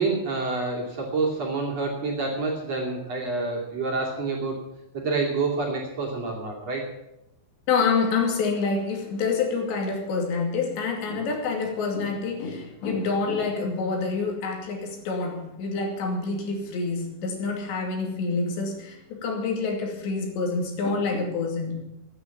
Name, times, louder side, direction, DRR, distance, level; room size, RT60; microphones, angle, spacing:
voice 1, 0.0-4.6 4.9-6.9, right 3 dB, 40° right, -2 dB, 3.0 m, -28 dB
voice 2, 7.7-21.9, left 4 dB, 70° left, 2 dB, 4.6 m, -27 dB
15.5 x 9.7 x 7.2 m, 0.90 s
omnidirectional pair, 5.3 m